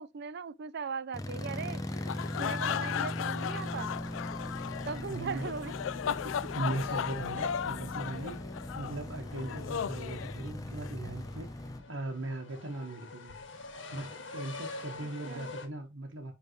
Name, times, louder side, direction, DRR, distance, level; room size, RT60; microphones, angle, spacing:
voice 1, 0.0-1.9 2.4-3.9 4.9-5.7 6.1-6.5 7.4-7.5 9.2-9.6 15.0-15.5, right 5 dB, 60° right, 0.5 m, -40 dB
sound 1, 1.1-11.8, left 1 dB, 20° left, 0.9 m, -39 dB
sound 2, 1.4-15.7, left 3 dB, 75° left, 1.8 m, -49 dB
sound 3, 1.9-10.9, left 8 dB, 90° left, 0.3 m, -36 dB
voice 2, 5.1-5.5 6.5-8.4 8.7-13.3 13.9-16.3, right 2 dB, 85° right, 1.3 m, -39 dB
9.9 x 3.6 x 3.1 m
head